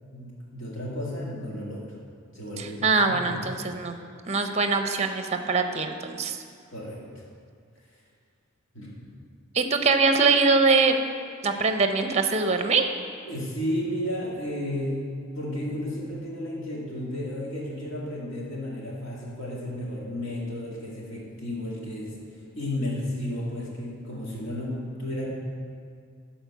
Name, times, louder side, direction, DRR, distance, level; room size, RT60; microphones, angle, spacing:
voice 1, 0.1-1.9 2.3-3.4 6.7-7.0 8.7-9.1 13.2-15.0 15.3-22.1 22.5-25.3, left 1 dB, 65° left, -5 dB, 2.3 m, -33 dB
voice 2, 2.6-4.0 4.3-6.4 9.5-11.0 11.4-12.9, right 4 dB, 30° right, 6 dB, 0.7 m, -23 dB
10.5 x 4.4 x 6.9 m, 2.2 s
head